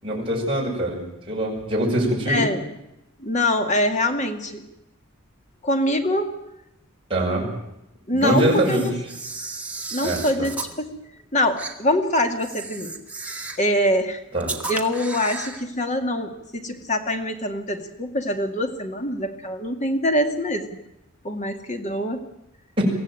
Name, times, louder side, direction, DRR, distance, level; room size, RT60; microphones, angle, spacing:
voice 1, 0.0-2.4 7.1-7.5 8.1-8.9 10.0-10.5 14.3-14.5 22.8-22.9, right 1 dB, 25° right, -3 dB, 7.2 m, -23 dB
voice 2, 2.3-2.6 3.2-4.6 5.6-6.3 8.1-8.9 9.9-11.0 11.3-13.0 13.6-14.2 14.7-20.7 21.2-22.2, left 1 dB, 35° left, 5 dB, 2.3 m, -24 dB
Camera, 8.2-10.7 11.6-11.7 12.4-13.7 14.4-15.6, right 3 dB, 5° right, 1.9 m, -34 dB
24.0 x 15.5 x 9.2 m, 0.88 s
head